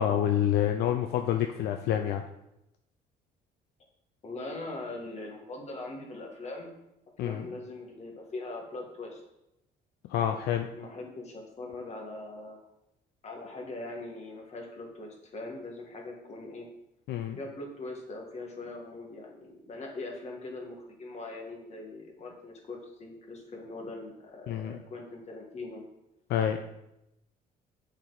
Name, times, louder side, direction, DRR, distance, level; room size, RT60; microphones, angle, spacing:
voice 1, 0.0-2.2 7.2-7.4 10.1-10.7 17.1-17.4 24.5-24.8 26.3-26.6, left 10 dB, 70° left, 6 dB, 0.5 m, -27 dB
voice 2, 4.2-6.7 7.2-9.2 10.7-12.7 13.2-16.7 17.4-25.8, left 2 dB, 40° left, 1 dB, 1.7 m, -41 dB
7.1 x 4.6 x 4.0 m, 0.87 s
cardioid pair, 110°, 17 cm